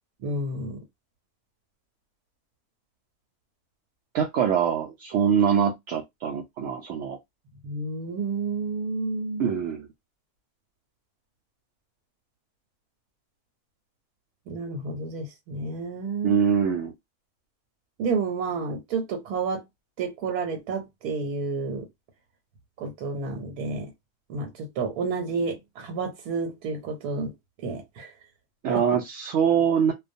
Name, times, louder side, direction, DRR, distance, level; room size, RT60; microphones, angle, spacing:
voice 1, 0.2-0.8 7.6-9.5 14.5-16.4 18.0-19.6 20.0-21.8 22.8-23.9 24.3-24.5 24.8-27.3 27.6-28.1 28.7-28.8, right 4 dB, 85° right, 1.2 m, -30 dB
voice 2, 4.1-7.2 9.4-9.9 16.2-16.9 28.6-29.9, right 7 dB, 65° right, 0.7 m, -24 dB
2.4 x 2.2 x 2.5 m
omnidirectional pair, 1.6 m